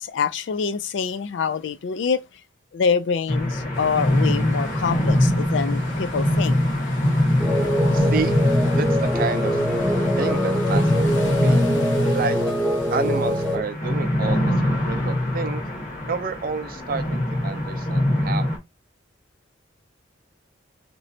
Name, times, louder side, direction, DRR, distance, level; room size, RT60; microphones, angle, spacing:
voice 1, 0.0-2.2 2.7-6.6, left 6 dB, 70° left, 0.4 m, -25 dB
sound 1, 3.3-18.6, left 1 dB, 40° left, 1.1 m, -23 dB
sound 2, 3.7-13.6, left 2 dB, 85° left, 1.1 m, -38 dB
sound 3, 7.4-13.6, equal, 5° left, 0.6 m, -24 dB
voice 2, 7.9-8.4 8.8-8.9 9.1-9.6 10.1-11.6 12.1-12.4 12.9-15.6 16.1-18.5, right 5 dB, 50° right, 0.5 m, -29 dB
3.1 x 3.0 x 2.7 m
head